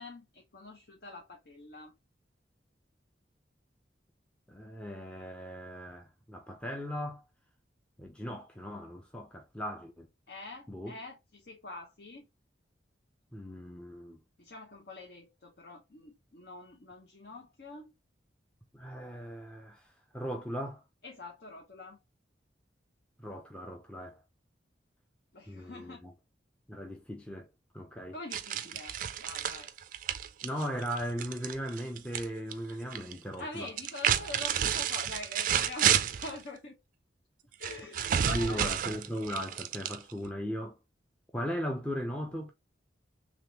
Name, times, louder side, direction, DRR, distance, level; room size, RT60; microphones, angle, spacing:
voice 1, 0.0-1.9 10.3-12.3 14.4-17.9 21.0-22.0 25.3-26.0 28.1-29.7 33.4-36.0 36.2-36.7 37.6-38.6, left 2 dB, 60° left, 0.8 m, -45 dB
voice 2, 4.5-7.2 8.0-10.1 10.7-11.0 13.3-14.2 18.7-19.8 20.1-20.8 23.2-24.2 25.5-26.1 26.7-27.5 27.7-28.2 30.4-33.7 34.6-34.7 38.3-40.8 41.3-42.5, equal, 5° left, 0.5 m, -38 dB
sound 1, 28.3-32.3 32.5-33.1 33.7-36.4 37.6-40.3, right 9 dB, 45° right, 0.3 m, -30 dB
3.5 x 3.0 x 2.7 m
head